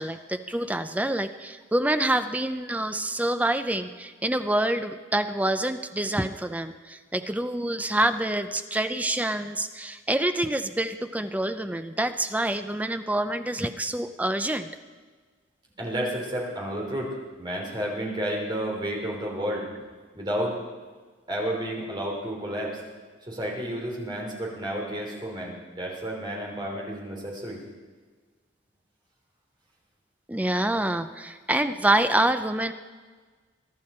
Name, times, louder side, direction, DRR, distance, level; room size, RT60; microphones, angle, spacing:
voice 1, 0.0-14.7 30.3-32.7, right 1 dB, 10° right, 9 dB, 0.5 m, -26 dB
voice 2, 15.8-17.1 17.4-19.7 20.1-20.5 21.3-22.8 23.3-27.6, equal, 25° right, -1 dB, 3.4 m, -31 dB
22.5 x 11.5 x 4.4 m, 1.4 s
head